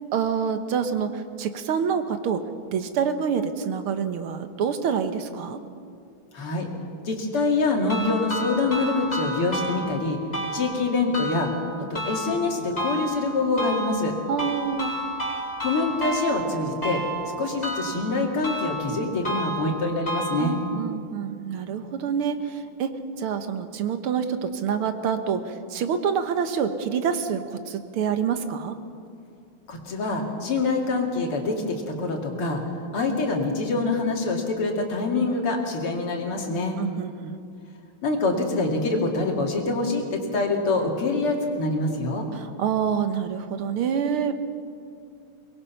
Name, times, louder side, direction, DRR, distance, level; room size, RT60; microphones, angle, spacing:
voice 1, 0.1-5.6 14.3-14.9 20.4-28.8 36.8-37.4 42.3-44.3, right 7 dB, 80° right, 9 dB, 2.0 m, -27 dB
voice 2, 6.3-6.7 7.0-10.2 10.5-11.5 11.9-14.1 15.6-17.0 17.4-20.6 29.7-32.6 32.9-36.8 38.0-42.3, left 3 dB, 90° left, 1 dB, 3.3 m, -25 dB
sound 1, 7.9-20.9, right 1 dB, 15° left, 4.7 m, -32 dB
23.0 x 21.0 x 5.7 m, 2.4 s
omnidirectional pair, 2.4 m